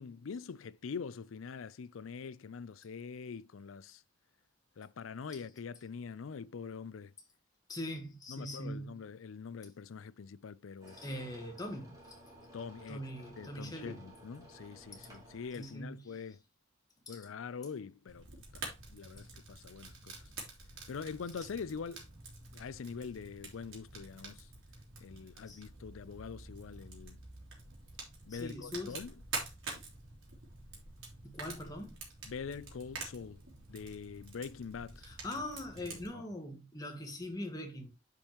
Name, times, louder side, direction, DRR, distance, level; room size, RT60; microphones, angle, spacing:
voice 1, 0.0-4.0 4.8-7.1 8.3-11.0 12.5-13.1 13.4-16.4 17.1-18.2 18.5-20.3 20.9-22.1 22.5-24.5 25.0-27.2 28.3-29.1 32.3-33.4 33.7-35.0 35.9-36.2, left 5 dB, 90° left, 0.5 m, -44 dB
voice 2, 7.7-9.0 10.9-12.2 12.9-14.0 14.9-15.1 15.5-16.2 17.1-17.3 21.4-21.5 25.5-25.6 28.3-29.0 31.2-32.0 35.0-37.9, left 1 dB, 20° left, 1.5 m, -42 dB
sound 1, 10.8-15.8, right 1 dB, 20° right, 2.5 m, -56 dB
Fire, 18.1-36.1, right 3 dB, 80° right, 3.2 m, -47 dB
9.8 x 5.3 x 3.0 m
head